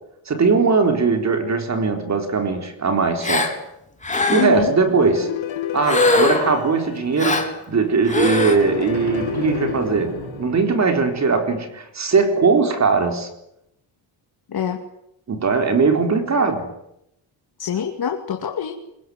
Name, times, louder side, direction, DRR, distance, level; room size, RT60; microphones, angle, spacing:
voice 1, 0.3-3.5 4.3-5.3 5.7-13.3 15.3-16.7, right 4 dB, 35° right, 5 dB, 4.1 m, -20 dB
Gasp, 3.2-3.5 4.0-4.6 5.8-6.6 7.2-7.5 8.1-8.5, left 2 dB, 15° left, 4.0 m, -21 dB
voice 2, 4.3-4.7 14.5-14.8 17.6-18.7, left 8 dB, 50° left, 3 dB, 2.5 m, -24 dB
sound 1, 4.9-7.7 8.4-11.2, left 11 dB, 85° left, 2.6 m, -31 dB
sound 2, 8.0-11.3, right 3 dB, 55° right, 7.8 m, -34 dB
25.5 x 23.0 x 9.6 m, 0.80 s
wide cardioid pair, 155°, 46 cm